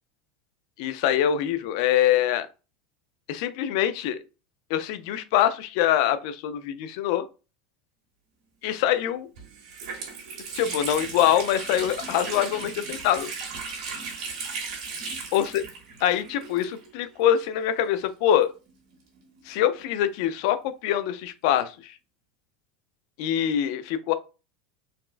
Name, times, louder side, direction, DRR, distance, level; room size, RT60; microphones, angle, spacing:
voice 1, 0.8-2.5 3.3-4.2 4.7-7.2 8.6-9.3 10.5-13.3 15.3-15.6 16.0-18.5 19.5-21.9 23.2-24.1, left 11 dB, 60° left, 0.4 m, -24 dB
Water tap faucet, 8.9-9.0 9.4-17.1 17.3-17.4 18.3-19.8, right 4 dB, 85° right, 1.5 m, -36 dB
4.0 x 2.2 x 2.4 m
supercardioid pair, 155°, 3 cm